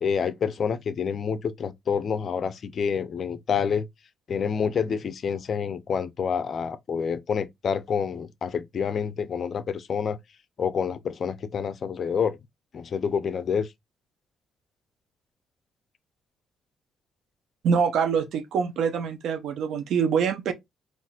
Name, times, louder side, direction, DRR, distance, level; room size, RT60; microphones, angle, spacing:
voice 1, 0.0-3.8 4.3-10.2 10.6-12.4 12.7-13.7, left 6 dB, 50° left, 0.4 m, -28 dB
voice 2, 17.6-20.5, right 6 dB, 75° right, 0.5 m, -25 dB
3.9 x 2.4 x 2.3 m
cardioid pair, 90°, 0 cm